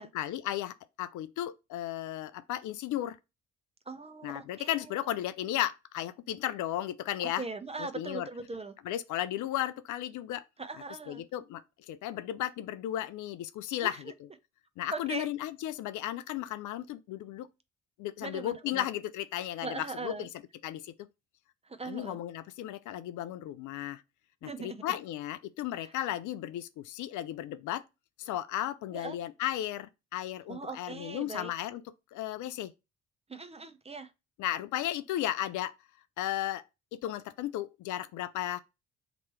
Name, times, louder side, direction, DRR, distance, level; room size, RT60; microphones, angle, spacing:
voice 1, 0.0-3.2 4.2-7.4 7.8-8.3 8.8-10.4 11.1-14.1 14.8-17.5 18.0-20.3 20.6-20.9 21.8-24.0 24.4-27.8 28.2-31.8 32.1-32.7 34.4-35.7 36.2-36.6 36.9-38.6, left 13 dB, 60° left, 0.4 m, -35 dB
voice 2, 3.9-5.2 7.2-8.7 10.6-11.2 13.8-14.1 14.9-15.3 18.2-18.8 19.6-20.3 21.6-22.2 24.4-24.8 25.8-25.9 28.9-29.2 30.5-31.5 33.3-34.1, right 3 dB, 20° right, 0.5 m, -40 dB
3.0 x 2.9 x 4.5 m
hypercardioid pair, 45°, 34 cm